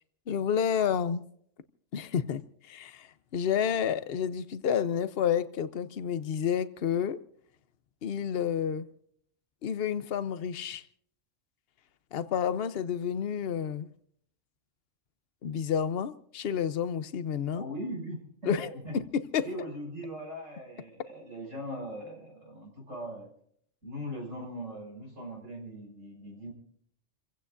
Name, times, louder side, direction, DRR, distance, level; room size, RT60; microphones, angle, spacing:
voice 1, 0.3-1.2 1.9-2.4 2.7-7.2 8.0-8.9 9.6-10.8 12.1-13.9 15.4-17.6 18.5-18.7 18.9-19.0 19.3-19.4, left 8 dB, 55° left, 1.0 m, -30 dB
voice 2, 17.5-19.0 19.4-23.3 23.8-26.5, equal, 85° right, 6.5 m, -40 dB
29.0 x 16.5 x 2.6 m
omnidirectional pair, 1.3 m